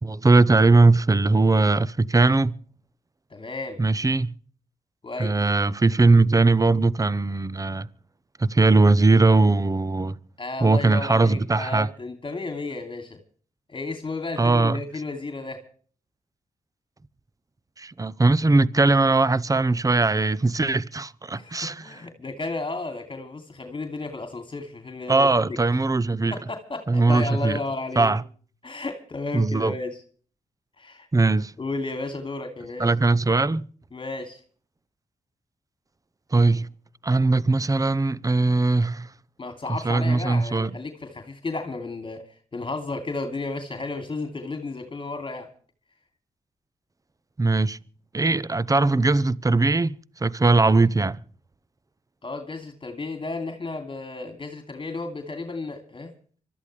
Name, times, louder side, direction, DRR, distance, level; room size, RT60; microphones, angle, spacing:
voice 1, 0.0-2.5 3.8-4.3 5.2-7.9 8.4-10.1 10.6-11.9 14.4-14.8 17.8-21.9 25.1-26.4 26.9-27.6 28.0-28.2 29.3-29.7 31.1-31.5 32.8-33.7 36.3-36.7 37.0-39.1 39.7-40.7 47.4-47.8 48.1-50.0 50.2-51.2, right 3 dB, 25° right, 0.8 m, -20 dB
voice 2, 3.3-3.8 5.0-5.4 10.4-13.2 13.7-15.6 21.3-25.3 26.3-28.1 28.6-30.0 30.8-31.1 31.6-32.9 33.9-34.4 39.4-42.2 42.5-45.5 52.2-56.1, left 3 dB, 40° left, 2.8 m, -33 dB
25.0 x 13.5 x 3.3 m
cardioid pair, 60°, 14 cm